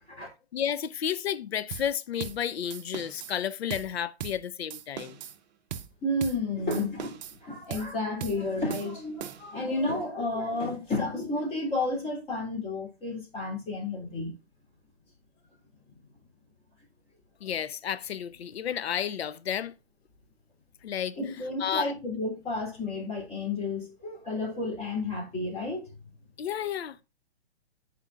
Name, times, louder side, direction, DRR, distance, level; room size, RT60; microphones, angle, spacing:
voice 1, 0.5-5.2 17.4-19.7 20.8-21.2 21.6-21.9 26.4-27.0, left 9 dB, 70° left, 0.7 m, -32 dB
sound 1, 1.7-1.9 2.2-2.4 2.7-3.4 3.7-3.9 4.2-4.4 4.7-5.4 5.7-5.9 6.2-6.4 6.7-7.4 7.7-7.9 8.2-8.4 8.7-9.6, right 9 dB, 45° right, 0.7 m, -39 dB
voice 2, 6.0-14.3 21.1-25.9, left 2 dB, 20° left, 3.2 m, -31 dB
13.5 x 4.5 x 2.4 m
hypercardioid pair, 130°, 32 cm